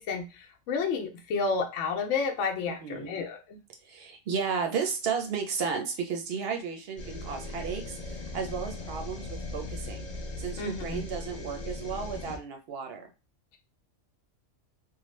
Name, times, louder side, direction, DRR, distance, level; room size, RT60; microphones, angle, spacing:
voice 1, 0.0-3.6 10.6-11.0, left 4 dB, 75° left, 2 dB, 0.9 m, -31 dB
voice 2, 2.7-3.1 3.8-10.0 10.4-13.1, right 6 dB, 65° right, 4 dB, 0.7 m, -33 dB
sound 1, 7.0-12.4, left 2 dB, 45° left, 0.6 m, -38 dB
3.1 x 2.0 x 3.1 m, 0.30 s
omnidirectional pair, 1.3 m